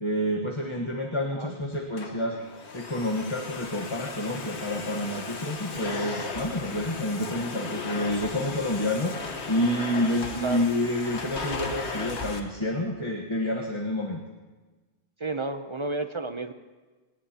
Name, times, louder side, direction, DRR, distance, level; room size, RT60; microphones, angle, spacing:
voice 1, 0.0-2.4 2.7-14.2, left 1 dB, 30° left, 0 dB, 1.2 m, -29 dB
Domestic sounds home sounds, 1.7-12.4, left 3 dB, 90° left, 1.6 m, -36 dB
voice 2, 15.2-16.5, right 2 dB, 35° right, 9 dB, 0.6 m, -31 dB
27.5 x 18.5 x 2.9 m, 1.3 s
omnidirectional pair, 1.1 m